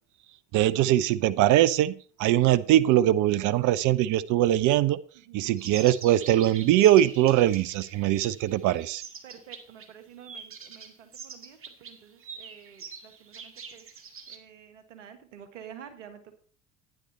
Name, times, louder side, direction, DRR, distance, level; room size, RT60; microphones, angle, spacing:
voice 1, 0.5-1.9 2.2-5.0 5.3-9.0, right 13 dB, 55° right, 16 dB, 0.8 m, -22 dB
voice 2, 5.1-5.6 9.2-13.9 14.3-16.4, right 8 dB, 80° right, 8 dB, 1.7 m, -49 dB
sound 1, 5.6-9.9 10.2-14.4, right 5 dB, 35° right, 2.0 m, -44 dB
11.5 x 10.0 x 4.2 m, 0.42 s
hypercardioid pair, 65°, 37 cm